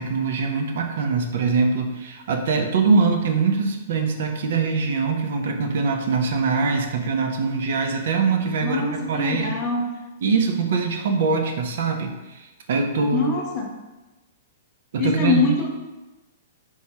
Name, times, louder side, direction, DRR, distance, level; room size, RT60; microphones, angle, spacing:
voice 1, 0.0-8.8 9.1-9.5 10.2-13.3 14.9-15.7, right 4 dB, 60° right, 4 dB, 0.4 m, -23 dB
voice 2, 8.6-9.9 13.0-13.7 15.0-15.7, left 4 dB, 25° left, 0 dB, 0.4 m, -24 dB
3.0 x 2.3 x 2.7 m, 1.1 s
hypercardioid pair, 160°, 0 cm